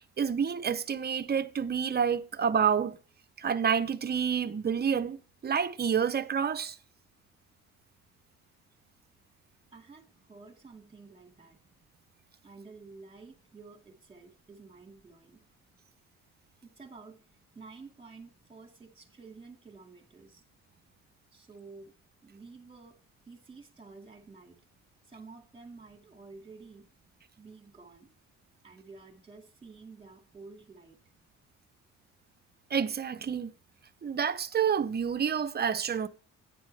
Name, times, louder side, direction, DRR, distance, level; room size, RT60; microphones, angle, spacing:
voice 1, 0.2-3.0 3.4-6.7 32.7-33.5 34.0-36.1, right 7 dB, 35° right, 0.7 m, -28 dB
voice 2, 9.7-11.6 12.4-15.4 16.6-17.2 17.5-20.4 21.3-21.9 22.2-23.0 23.3-24.6 25.1-26.9 27.4-28.1 28.6-31.0, right 4 dB, 20° right, 2.3 m, -51 dB
10.0 x 9.2 x 3.4 m
cardioid pair, 90°, 30 cm